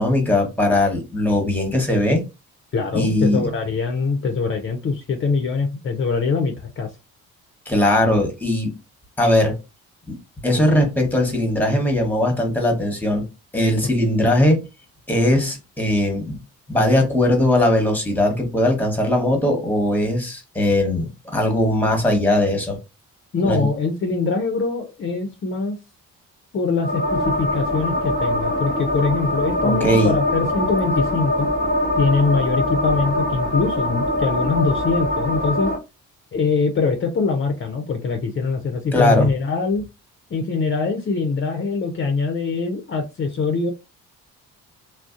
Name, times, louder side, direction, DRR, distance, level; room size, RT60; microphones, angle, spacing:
voice 1, 0.0-2.2 2.9-3.5 7.7-8.7 9.2-9.5 10.1-10.2 10.4-13.2 13.5-14.6 15.1-16.4 16.7-22.8 23.4-23.7 29.6-30.1 38.9-39.3, left 1 dB, 5° left, 1.0 m, -19 dB
voice 2, 2.7-6.9 23.3-25.8 26.5-31.5 31.9-35.7 36.3-39.8 40.3-43.7, left 4 dB, 35° left, 0.5 m, -23 dB
sound 1, 26.8-35.8, left 1 dB, 25° right, 1.1 m, -23 dB
2.6 x 2.0 x 2.4 m
supercardioid pair, 65°, 33 cm